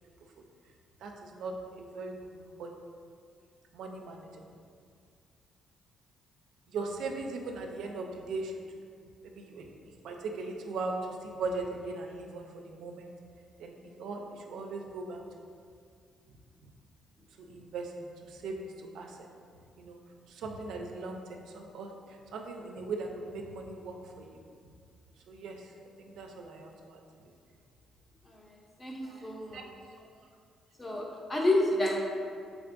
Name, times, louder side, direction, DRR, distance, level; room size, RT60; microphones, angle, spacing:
voice 1, 1.0-2.7 3.7-4.5 6.7-8.6 9.2-13.1 13.6-15.2 17.4-19.3 19.8-20.0 20.3-24.4 25.3-25.7 26.0-27.0 29.0-29.6, right 3 dB, 80° right, 2 dB, 0.3 m, -39 dB
voice 2, 28.3-29.6 30.8-32.0, left 1 dB, 20° left, -2 dB, 0.6 m, -30 dB
3.5 x 3.4 x 2.5 m, 2.2 s
cardioid pair, 90°, 0 cm